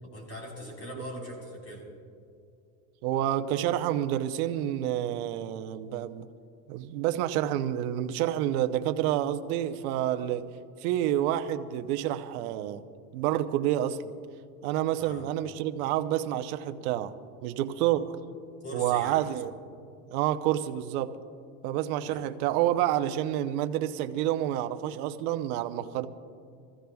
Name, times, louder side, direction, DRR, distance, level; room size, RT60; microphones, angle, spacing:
voice 1, 0.0-1.8 15.0-15.2 17.9-18.0 18.6-19.2 22.0-22.3, equal, 35° left, -1 dB, 4.2 m, -41 dB
voice 2, 3.0-6.2 6.7-10.5 10.8-12.8 13.1-14.1 14.6-17.1 17.4-18.1 18.7-19.5 20.1-21.2 21.6-26.1, right 12 dB, 75° right, 9 dB, 0.8 m, -28 dB
25.0 x 15.5 x 2.3 m, 2.3 s
supercardioid pair, 135°, 44 cm